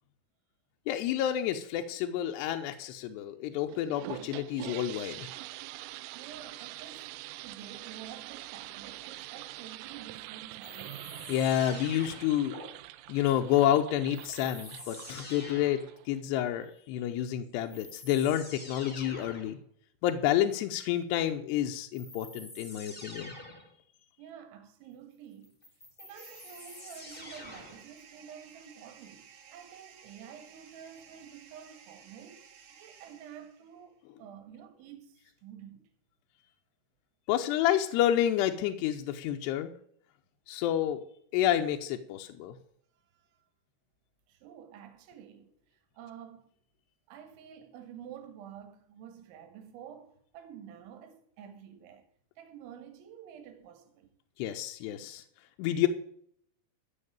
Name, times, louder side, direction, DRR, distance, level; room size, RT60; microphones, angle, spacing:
voice 1, 0.9-5.3 11.3-12.5 13.1-15.8 16.1-19.6 20.0-23.3 37.3-39.7 40.5-41.0 41.3-42.6 54.4-55.2 55.6-55.9, left 11 dB, 80° left, 2.5 m, -29 dB
sound 1, 3.7-16.2, right 17 dB, 90° right, 3.2 m, -45 dB
voice 2, 6.1-7.1 7.4-11.1 24.2-25.6 26.0-32.4 32.7-35.9 43.0-43.3 44.3-46.5 47.1-52.1 52.4-54.1, right 9 dB, 75° right, 3.8 m, -49 dB
sound 2, 10.6-12.7 14.1-15.9 17.2-17.3 17.7-19.5 21.9-23.7 25.4-27.9, left 2 dB, 40° left, 0.7 m, -47 dB
sound 3, 26.1-33.8, right 7 dB, 60° right, 2.7 m, -55 dB
13.5 x 6.4 x 8.8 m
omnidirectional pair, 5.6 m